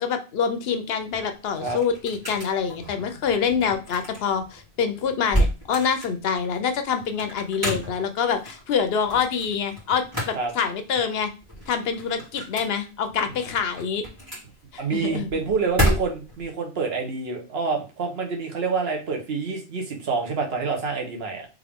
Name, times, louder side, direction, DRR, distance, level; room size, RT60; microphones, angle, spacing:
voice 1, 0.0-11.3 11.7-14.0 14.7-15.3, left 6 dB, 75° left, 8 dB, 0.9 m, -26 dB
Metal case open and close with Clips, 1.0-16.5, equal, 20° right, 2.1 m, -31 dB
voice 2, 14.8-21.5, right 4 dB, 75° right, 2 dB, 1.2 m, -27 dB
3.5 x 3.4 x 3.5 m, 0.32 s
omnidirectional pair, 1.0 m